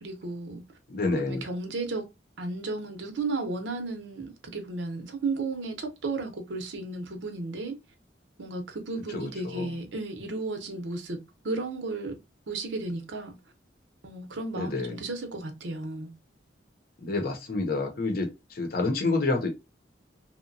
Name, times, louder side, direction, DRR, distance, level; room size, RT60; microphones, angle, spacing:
voice 1, 0.0-0.6 1.1-2.0 2.4-7.8 8.4-11.2 11.4-12.1 12.5-13.3 14.0-16.1, right 3 dB, 90° right, 0.7 m, -34 dB
voice 2, 0.9-1.4 9.1-9.7 14.5-15.0 17.0-19.5, left 3 dB, 50° left, 0.7 m, -28 dB
2.9 x 2.2 x 2.5 m
head